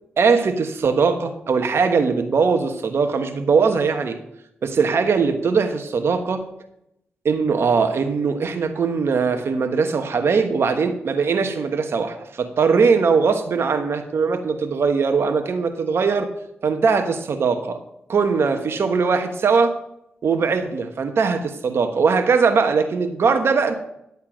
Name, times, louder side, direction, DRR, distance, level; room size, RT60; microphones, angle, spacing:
voice 1, 0.2-4.2 4.6-6.4 7.2-16.3 16.6-17.8 18.1-19.7 20.2-23.7, right 5 dB, 70° right, 6 dB, 1.1 m, -20 dB
10.5 x 8.1 x 5.0 m, 0.79 s
cardioid pair, 55°, 4 cm